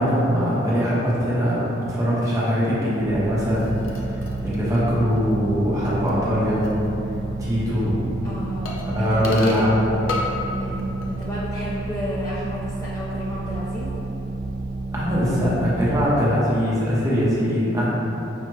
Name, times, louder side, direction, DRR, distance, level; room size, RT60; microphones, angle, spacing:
voice 1, 0.0-3.7 4.4-6.7 7.4-8.0 8.9-9.8 14.9-17.9, equal, 15° right, -8 dB, 0.8 m, -21 dB
sound 1, 3.0-16.0, right 2 dB, 60° left, 1.5 m, -31 dB
sound 2, 3.5-6.9 7.1-7.2 8.7-9.7 10.1-10.5 10.8-11.3 11.6-11.7, left 3 dB, 85° left, 0.5 m, -35 dB
voice 2, 8.2-9.7 10.5-13.9, equal, 15° left, -8 dB, 0.4 m, -32 dB
5.3 x 2.4 x 3.2 m, 3.0 s
head